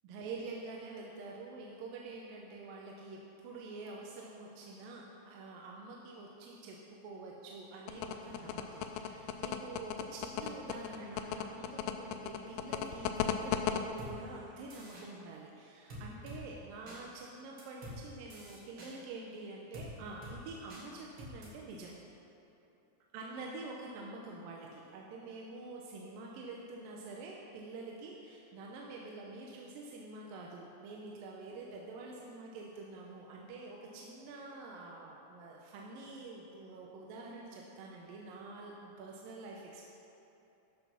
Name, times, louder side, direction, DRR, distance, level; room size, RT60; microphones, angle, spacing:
voice 1, 0.0-6.8 7.0-21.9 23.1-39.8, right 3 dB, 80° right, -2 dB, 2.3 m, -47 dB
sound 1, 7.9-13.8, left 10 dB, 85° left, 2.0 m, -35 dB
sound 2, 14.0-14.1 14.7-15.1 15.9-16.4 16.9-17.0 17.6-18.0 18.3-18.9 19.7-19.9 20.2-20.4 20.7-20.8 21.2-21.5, equal, 45° right, 2.0 m, -47 dB
12.5 x 5.7 x 5.7 m, 3.0 s
omnidirectional pair, 4.4 m